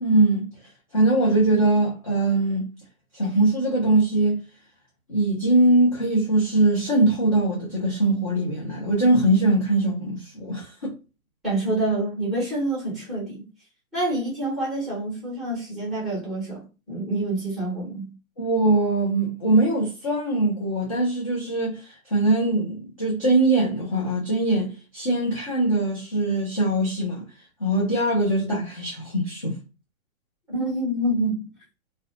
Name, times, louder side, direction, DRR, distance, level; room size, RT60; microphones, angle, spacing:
voice 1, 0.0-0.5 0.9-2.7 3.1-4.4 5.1-10.9 18.4-27.2 27.6-29.6, right 2 dB, 25° left, 0.3 m, -22 dB
voice 2, 11.4-13.5 13.9-18.1 30.5-31.5, right 1 dB, ahead, 0.8 m, -27 dB
2.4 x 2.1 x 2.5 m
hypercardioid pair, 140°, 42 cm